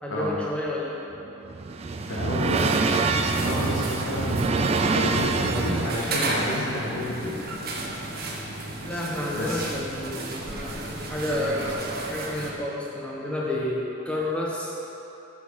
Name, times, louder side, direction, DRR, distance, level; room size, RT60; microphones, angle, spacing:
voice 1, 0.0-1.0 8.8-14.7, left 1 dB, 5° left, -5 dB, 1.2 m, -30 dB
sound 1, 1.1-6.2, right 4 dB, 30° right, 0.3 m, -26 dB
voice 2, 2.0-2.7 3.4-7.6 9.3-9.7, left 1 dB, 70° left, -5 dB, 1.7 m, -30 dB
sound 2, 2.4-12.5, right 2 dB, 50° right, 1.0 m, -33 dB
9.1 x 4.9 x 6.4 m, 3.0 s
head